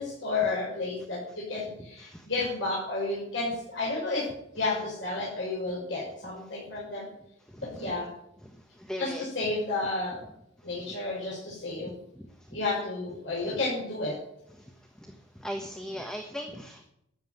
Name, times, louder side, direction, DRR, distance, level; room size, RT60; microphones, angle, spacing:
voice 1, 0.0-4.2 4.5-7.1 7.8-8.1 9.0-10.2 10.6-12.0 12.5-14.1, left 3 dB, 70° left, -6 dB, 6.4 m, -31 dB
voice 2, 7.5-7.9 8.8-9.2 12.2-12.3 14.6-14.7 15.0-16.8, equal, 5° left, 4 dB, 1.3 m, -38 dB
13.5 x 9.3 x 9.3 m, 0.77 s
head